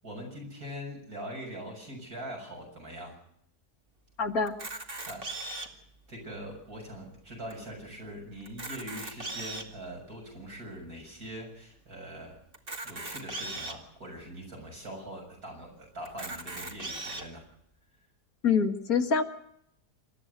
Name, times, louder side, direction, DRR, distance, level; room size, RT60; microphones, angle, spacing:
voice 1, 0.0-3.2 5.1-5.5 6.1-12.4 12.8-17.4, equal, 65° right, 1 dB, 7.5 m, -42 dB
voice 2, 4.2-4.5 18.4-19.2, left 5 dB, 65° left, 5 dB, 2.2 m, -25 dB
Camera, 4.5-5.9 6.5-6.6 6.8-7.0 7.5-7.6 8.4-9.8 10.4-10.5 12.5-13.8 14.5-14.6 14.9-15.0 16.0-17.2, right 2 dB, 35° right, 2.5 m, -38 dB
27.5 x 13.5 x 8.0 m, 0.71 s
omnidirectional pair, 1.7 m